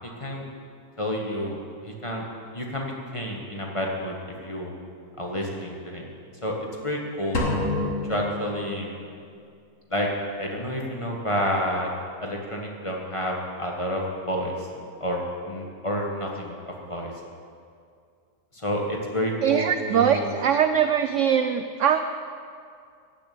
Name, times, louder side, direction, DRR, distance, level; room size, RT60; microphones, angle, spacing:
voice 1, 1.0-2.3 2.5-4.1 4.4-4.7 5.2-6.1 6.4-6.6 6.8-7.4 8.1-8.9 9.9-10.1 10.4-11.9 12.2-14.7 15.0-17.1 18.5-20.3, equal, 20° left, -1 dB, 1.4 m, -29 dB
sound 1, 7.3-9.1, left 2 dB, 50° left, 1.8 m, -28 dB
voice 2, 19.4-22.0, right 8 dB, 70° right, 9 dB, 0.7 m, -22 dB
12.5 x 7.2 x 8.5 m, 2.3 s
omnidirectional pair, 1.8 m